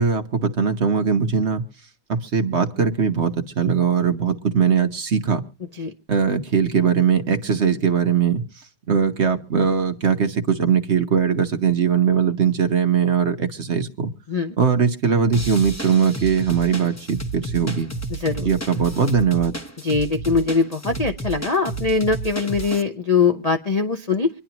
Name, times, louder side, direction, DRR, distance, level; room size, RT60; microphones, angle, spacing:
voice 1, 0.0-1.6 2.1-5.4 6.1-14.1 14.6-17.9 18.4-19.6, right 6 dB, 50° right, 7 dB, 1.0 m, -20 dB
sound 1, 15.3-22.8, right 3 dB, 10° left, 0.9 m, -32 dB
voice 2, 19.8-24.3, left 4 dB, 55° left, 6 dB, 0.4 m, -22 dB
25.5 x 10.5 x 2.9 m, 0.35 s
omnidirectional pair, 1.9 m